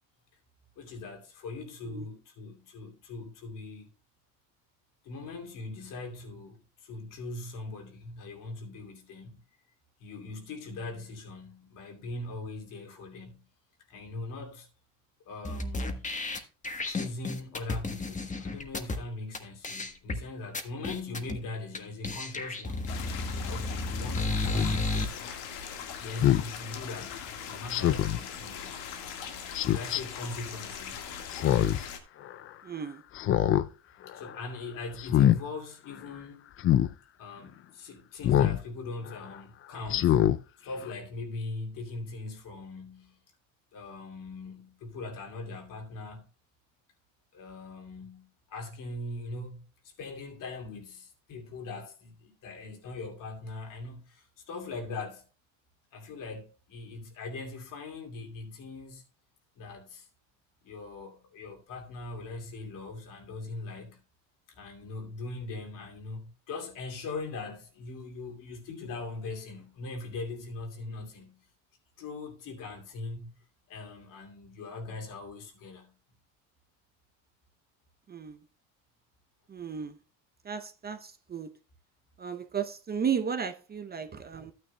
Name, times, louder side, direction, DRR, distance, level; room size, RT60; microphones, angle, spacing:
voice 1, 0.8-3.9 5.0-9.4 10.0-13.4 13.9-14.7 15.2-16.1 16.8-25.3 26.0-27.2 27.5-28.7 29.6-31.1 34.1-36.5 37.2-40.2 40.6-43.2 43.7-46.3 47.3-55.3 55.9-59.0 59.6-60.1 60.6-64.0 64.5-71.4 72.0-73.4 73.7-75.9, left 3 dB, 55° left, 2.7 m, -41 dB
sound 1, 15.4-19.0 19.3-19.4 19.6-20.2 20.5-21.4 21.7-21.8 22.0-25.0, left 2 dB, 20° left, 1.2 m, -32 dB
sound 2, 22.9-32.0, left 7 dB, 80° left, 1.8 m, -41 dB
Speech synthesizer, 24.6-24.7 26.2-26.5 27.7-28.2 29.5-30.0 31.3-31.8 32.2-32.3 33.2-33.7 34.1-34.4 35.0-35.4 36.6-36.9 38.2-38.6 39.1-39.2 39.9-40.4 40.8-40.9, left 12 dB, 35° left, 0.4 m, -24 dB
voice 2, 32.6-33.0 78.1-78.4 79.5-80.0 80.4-81.5 82.2-84.5, right 7 dB, 25° right, 0.7 m, -34 dB
12.5 x 9.3 x 2.2 m
supercardioid pair, 105°, 38 cm